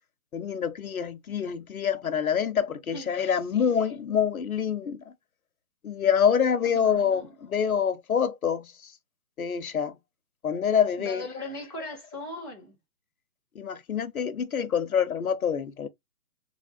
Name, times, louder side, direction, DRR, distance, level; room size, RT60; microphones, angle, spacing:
voice 1, 0.3-5.0 5.8-8.9 9.4-10.0 10.4-11.2 13.5-15.9, left 7 dB, 65° left, 0.8 m, -26 dB
voice 2, 6.6-7.3 11.0-12.8, left 1 dB, 15° right, 0.5 m, -39 dB
3.5 x 3.4 x 2.5 m
figure-of-eight pair, 145°, 46 cm